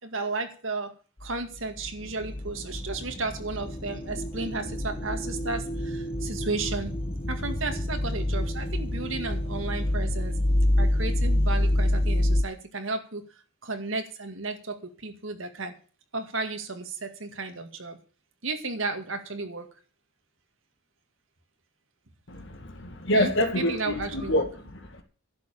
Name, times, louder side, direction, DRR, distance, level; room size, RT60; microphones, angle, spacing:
voice 1, 0.0-0.9 1.2-7.0 7.3-10.4 10.8-13.2 13.6-15.7 16.1-18.0 18.4-19.7 23.1-24.5, right 3 dB, 65° right, 2.2 m, -33 dB
sound 1, 1.2-12.4, left 1 dB, 30° left, 1.1 m, -27 dB
voice 2, 22.3-25.0, left 1 dB, 60° left, 2.2 m, -27 dB
11.5 x 6.9 x 8.8 m
head